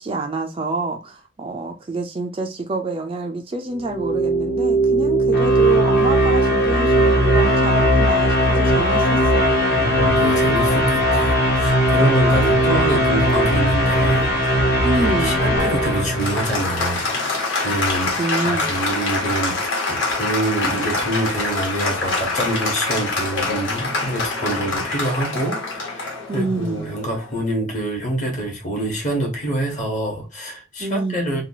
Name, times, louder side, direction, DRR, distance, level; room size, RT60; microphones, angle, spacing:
voice 1, 0.0-9.5 14.8-15.4 18.1-18.7 26.3-26.9 30.8-31.4, right 2 dB, 25° right, 0.3 m, -27 dB
sound 1, 3.7-16.9, equal, 60° left, 1.0 m, -18 dB
voice 2, 9.7-14.7 15.0-17.1 17.6-18.1 18.4-31.4, right 1 dB, 35° left, 1.1 m, -26 dB
Applause, 15.6-27.4, left 3 dB, 75° left, 1.3 m, -25 dB
2.9 x 2.3 x 2.7 m
head